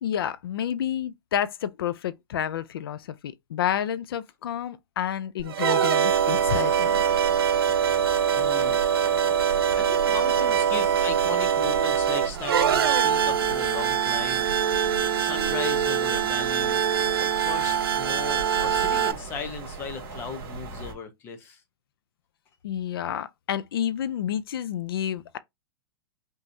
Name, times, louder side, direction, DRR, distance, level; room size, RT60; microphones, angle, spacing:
voice 1, 0.0-7.0 22.6-25.4, left 10 dB, 80° left, 0.5 m, -30 dB
sound 1, 5.4-19.1, right 8 dB, 90° right, 0.9 m, -23 dB
sound 2, 6.0-20.9, right 5 dB, 20° right, 2.1 m, -39 dB
voice 2, 8.3-8.9 9.7-14.6 15.1-16.8 17.4-21.6, left 6 dB, 20° left, 0.8 m, -37 dB
5.5 x 3.0 x 2.7 m
supercardioid pair, 170°, 12 cm